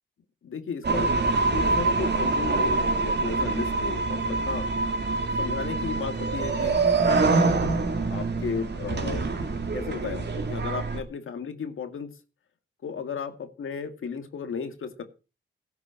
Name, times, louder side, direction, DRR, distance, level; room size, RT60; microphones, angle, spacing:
voice 1, 0.4-1.1 1.5-4.7 5.4-6.8 8.1-12.1 12.8-15.0, left 6 dB, 85° left, 8 dB, 2.0 m, -34 dB
sound 1, 0.8-11.0, right 3 dB, 55° right, 2.6 m, -25 dB
17.0 x 6.2 x 6.0 m, 0.32 s
cardioid pair, 85°, 21 cm